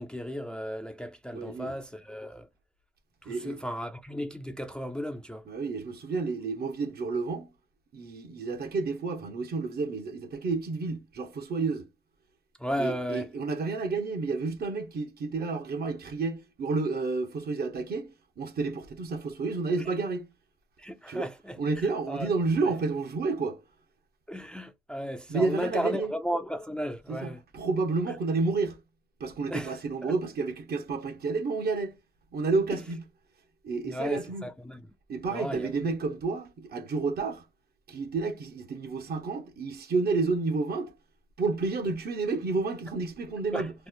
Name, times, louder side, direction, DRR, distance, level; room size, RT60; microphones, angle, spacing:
voice 1, 0.0-2.5 3.2-5.5 12.6-13.3 20.8-22.3 24.3-27.4 28.1-28.2 29.5-29.7 30.0-30.1 32.7-32.8 33.8-34.8 35.3-35.7 43.5-43.7, equal, 5° left, 0.4 m, -35 dB
voice 2, 1.3-1.7 3.3-3.6 5.5-7.5 7.9-11.9 12.8-20.3 21.1-21.3 21.6-23.6 25.3-26.1 27.1-28.8 29.2-32.0 32.3-33.0 33.6-34.5 35.1-37.5 37.9-41.0 41.4-43.7, right 4 dB, 50° right, 0.9 m, -30 dB
3.1 x 2.0 x 3.6 m
cardioid pair, 90°, 20 cm